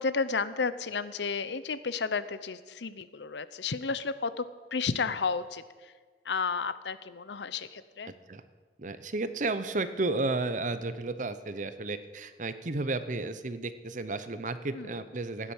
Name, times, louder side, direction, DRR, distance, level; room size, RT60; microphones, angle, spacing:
voice 1, 0.0-4.4 4.7-5.9 6.2-8.1 14.7-15.0, left 5 dB, 80° left, 14 dB, 0.7 m, -32 dB
voice 2, 8.8-15.5, right 3 dB, 45° right, 12 dB, 0.8 m, -32 dB
16.0 x 9.9 x 7.3 m, 1.5 s
head